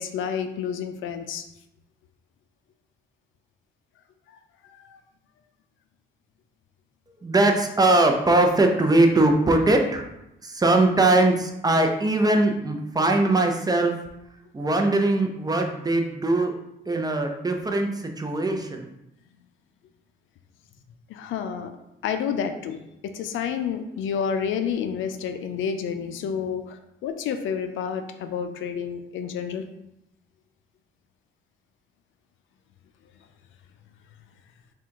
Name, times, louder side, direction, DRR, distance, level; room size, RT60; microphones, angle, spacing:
voice 1, 0.0-1.5 4.7-5.0 21.1-21.7 22.0-22.8 23.0-29.6, left 7 dB, 80° left, 8 dB, 0.5 m, -29 dB
voice 2, 7.2-10.1 10.4-13.9 14.5-16.5 16.9-18.9, right 2 dB, 20° right, 3 dB, 0.6 m, -21 dB
3.7 x 2.4 x 4.5 m, 0.85 s
cardioid pair, 90°, 20 cm